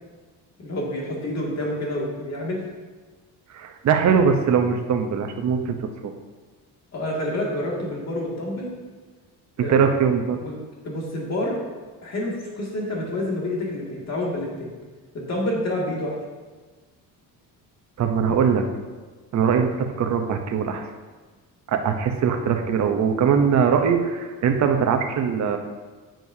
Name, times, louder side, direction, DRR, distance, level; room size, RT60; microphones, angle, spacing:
voice 1, 0.6-2.6 6.9-8.7 9.6-9.9 10.4-10.6 10.8-11.6 12.0-14.7 15.1-16.1 18.2-18.3, left 1 dB, 45° left, -3 dB, 2.3 m, -28 dB
voice 2, 3.5-6.1 9.7-10.4 18.0-18.6 19.3-20.8 21.7-25.6, right 6 dB, 50° right, 5 dB, 0.8 m, -21 dB
9.6 x 7.6 x 2.8 m, 1.3 s
cardioid pair, 135°, 37 cm